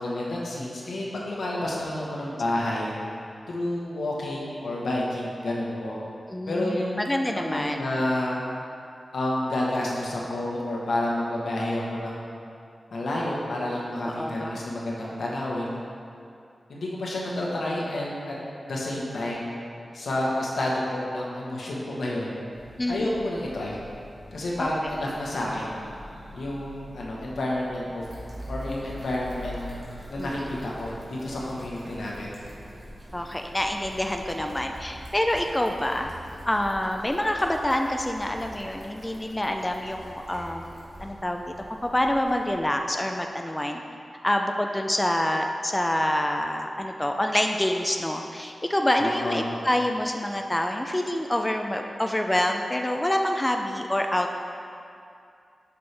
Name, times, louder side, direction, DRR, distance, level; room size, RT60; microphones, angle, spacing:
voice 1, 0.0-2.9 3.5-6.0 6.5-7.0 7.5-8.4 9.1-12.2 12.9-15.8 16.7-18.3 18.7-19.5 19.9-22.3 22.9-23.8 24.3-25.8 26.3-28.1 28.5-29.6 30.1-32.3 49.0-49.5, left 1 dB, 85° left, -4 dB, 1.1 m, -29 dB
voice 2, 6.3-7.8 14.0-14.6 22.8-23.1 24.6-24.7 30.2-30.3 33.1-36.1 36.5-43.8 44.2-54.4, left 1 dB, 15° left, 3 dB, 0.3 m, -27 dB
Church bell, 22.5-36.8, equal, 80° right, 1.6 m, -48 dB
sound 1, 28.0-42.8, equal, 55° right, 1.5 m, -44 dB
6.9 x 5.3 x 3.3 m, 2.5 s
wide cardioid pair, 95°, 0 cm